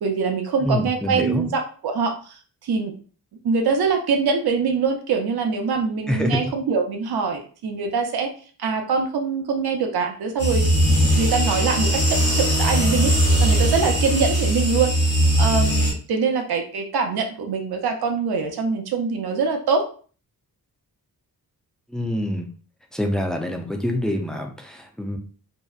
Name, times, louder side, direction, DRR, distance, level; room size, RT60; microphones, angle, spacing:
voice 1, 0.0-3.0 3.4-8.3 8.6-14.9 15.4-19.9, right 5 dB, 80° right, 3 dB, 0.6 m, -24 dB
voice 2, 0.6-1.4 6.1-6.4 21.9-22.5 22.9-25.2, left 1 dB, ahead, 2 dB, 0.3 m, -25 dB
sound 1, 10.4-15.9, right 1 dB, 90° left, 1.0 m, -19 dB
2.7 x 2.1 x 2.3 m, 0.41 s
wide cardioid pair, 105°, 37 cm